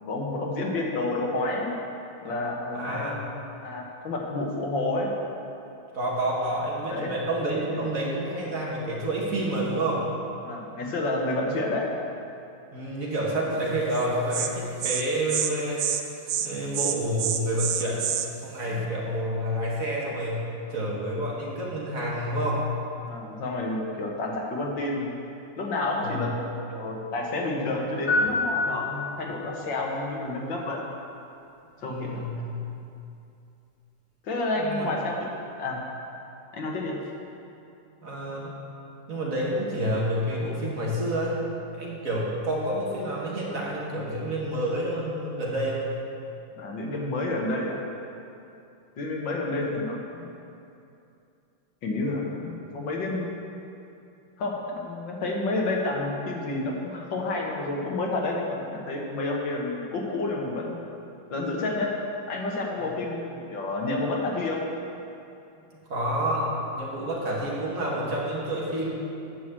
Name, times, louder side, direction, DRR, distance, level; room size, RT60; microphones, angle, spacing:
voice 1, 0.1-1.7 2.2-5.1 6.9-7.1 10.4-11.9 18.7-18.9 23.1-25.1 25.6-30.8 31.8-32.4 34.2-35.8 36.5-37.0 46.6-47.8 49.0-50.3 51.8-53.3 54.4-60.8 61.3-61.9 62.3-64.6, left 2 dB, 80° left, -1 dB, 2.1 m, -30 dB
voice 2, 2.7-3.2 5.9-10.0 12.7-15.8 16.4-18.0 18.4-20.4 20.7-22.6 26.0-26.2 31.8-32.4 34.6-34.9 38.0-38.6 39.1-41.4 41.7-45.8 62.8-62.9 65.9-68.9, right 1 dB, 45° right, -4 dB, 2.0 m, -29 dB
Insect, 13.9-14.1 14.3-14.5 14.8-15.0 15.3-15.5 15.8-16.0 16.3-16.5 16.7-18.3, right 9 dB, 65° right, 0.9 m, -27 dB
sound 1, 28.1-29.5, left 2 dB, 35° left, 2.1 m, -27 dB
9.4 x 6.2 x 7.5 m, 2.7 s
omnidirectional pair, 2.0 m